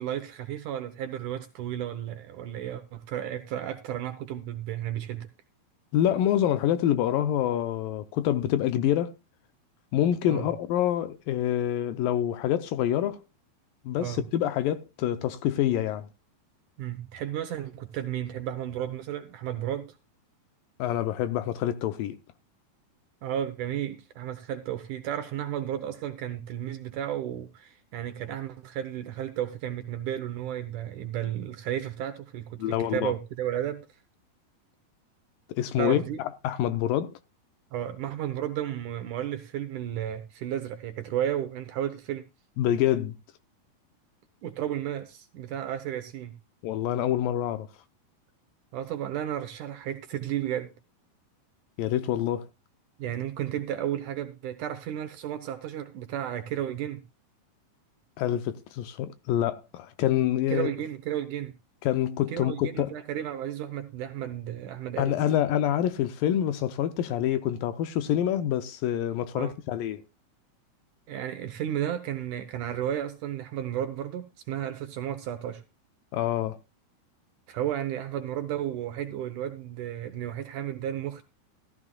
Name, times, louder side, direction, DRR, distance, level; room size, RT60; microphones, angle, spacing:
voice 1, 0.0-5.3 10.3-10.5 14.0-14.2 16.8-20.0 23.2-33.9 35.8-36.2 37.7-42.3 44.4-46.3 48.7-50.7 53.0-57.0 60.5-61.5 62.3-65.2 69.3-69.5 71.1-75.6 77.5-81.2, right 11 dB, 70° right, 2.0 m, -33 dB
voice 2, 5.9-9.2 9.9-13.2 13.9-16.1 20.8-22.2 32.6-33.1 35.6-37.2 42.6-43.2 46.6-47.7 51.8-52.5 58.2-60.7 61.8-62.9 65.0-70.0 76.1-76.6, left 11 dB, 75° left, 2.3 m, -26 dB
15.0 x 13.5 x 2.3 m
omnidirectional pair, 4.4 m